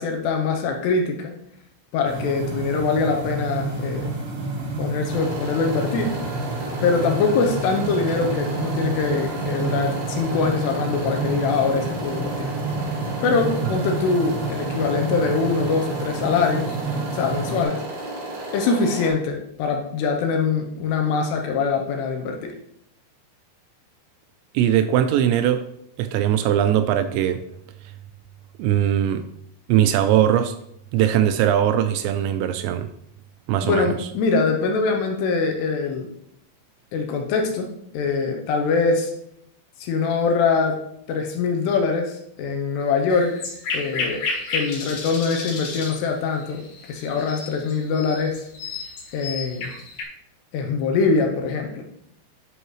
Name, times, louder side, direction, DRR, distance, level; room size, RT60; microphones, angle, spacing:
voice 1, 0.0-1.3 1.9-4.1 4.8-6.1 6.8-12.5 13.2-16.8 17.1-17.8 18.5-22.5 33.6-36.1 36.9-39.1 39.8-40.8 41.1-43.4 43.7-44.2 44.5-46.6 46.9-48.4 49.1-49.7 50.5-51.8, left 4 dB, 75° left, 3 dB, 2.7 m, -23 dB
sound 1, 2.0-17.6, right 3 dB, 65° right, 3.6 m, -29 dB
sound 2, 5.1-19.1, right 1 dB, 45° right, 1.6 m, -33 dB
voice 2, 24.5-25.6 26.0-27.4 28.6-29.2 29.7-30.5 30.9-32.9 33.5-34.1, right 10 dB, 85° right, 9 dB, 2.7 m, -20 dB
sound 3, 43.1-50.0, left 4 dB, 60° left, 2.8 m, -32 dB
10.0 x 5.6 x 3.1 m, 0.73 s
omnidirectional pair, 5.3 m